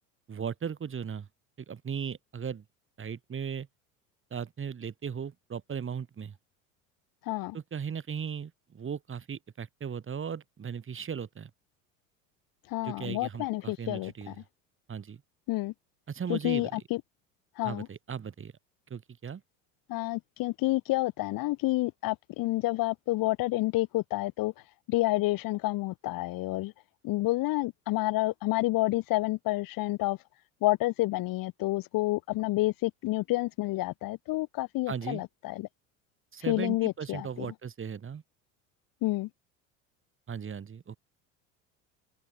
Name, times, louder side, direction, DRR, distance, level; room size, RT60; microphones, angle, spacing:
voice 1, 0.3-1.3 1.6-2.6 3.0-3.7 4.3-6.3 7.5-11.5 12.8-14.4 14.9-15.2 16.1-16.8 17.6-18.5 18.9-19.4 34.9-35.2 36.3-38.2 40.3-41.0, right 7 dB, 30° right, 5.2 m, -37 dB
voice 2, 7.2-7.6 12.7-14.3 15.5-15.7 16.3-17.0 17.6-17.9 19.9-24.5 24.9-26.7 27.0-30.2 30.6-35.7 36.5-37.5 39.0-39.3, left 19 dB, 55° left, 4.1 m, -29 dB
open air
hypercardioid pair, 75°, 39 cm